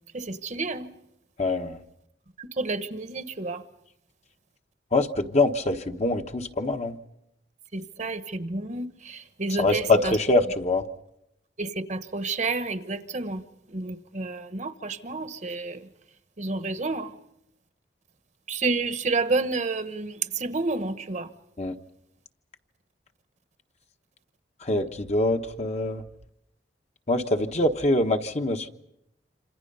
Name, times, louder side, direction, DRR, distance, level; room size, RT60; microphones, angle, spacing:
voice 1, 0.1-0.9 2.4-3.6 7.7-10.2 11.6-15.9 16.4-17.1 18.5-21.3, right 3 dB, 45° right, 1.1 m, -30 dB
voice 2, 1.4-1.8 4.9-7.0 9.6-10.8 21.6-21.7 24.6-26.0 27.1-28.7, left 2 dB, 40° left, 1.2 m, -24 dB
27.0 x 26.5 x 5.5 m
head